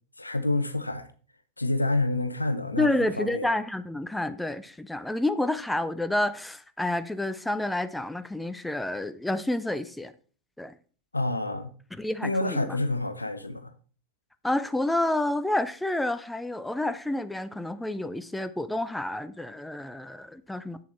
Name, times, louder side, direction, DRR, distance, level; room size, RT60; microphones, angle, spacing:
voice 1, 0.2-1.1 1.6-2.9 3.2-3.5 11.1-11.7 12.2-13.7, left 2 dB, 85° left, 0.7 m, -28 dB
voice 2, 2.8-10.1 10.6-10.7 11.9-12.8 14.4-20.8, left 1 dB, 5° left, 0.5 m, -29 dB
7.4 x 7.1 x 4.3 m
figure-of-eight pair, 90°, 0 cm